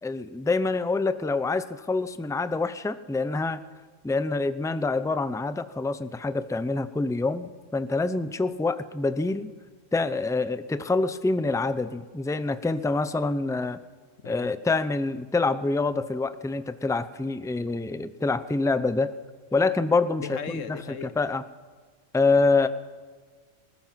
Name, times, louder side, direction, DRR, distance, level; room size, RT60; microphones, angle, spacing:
voice 1, 0.0-3.6 4.0-9.5 9.9-13.8 14.2-19.1 19.5-21.4 22.1-22.7, left 3 dB, 5° left, 13 dB, 0.5 m, -26 dB
voice 2, 20.2-21.2, left 7 dB, 75° left, 12 dB, 1.4 m, -37 dB
20.5 x 19.5 x 7.5 m, 1.5 s
omnidirectional pair, 1.3 m